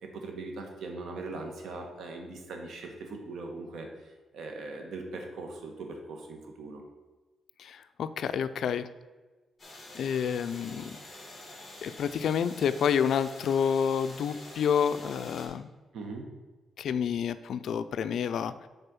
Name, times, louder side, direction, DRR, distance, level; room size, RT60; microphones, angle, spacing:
voice 1, 0.0-6.8 15.9-16.3, right 3 dB, 75° right, 3 dB, 1.4 m, -40 dB
voice 2, 7.6-8.9 9.9-11.0 11.8-15.7 16.8-18.7, left 7 dB, 70° left, 13 dB, 0.4 m, -29 dB
sound 1, 9.6-15.5, left 2 dB, 25° left, 2.1 m, -47 dB
6.5 x 4.3 x 6.1 m, 1.2 s
cardioid pair, 125°, 0 cm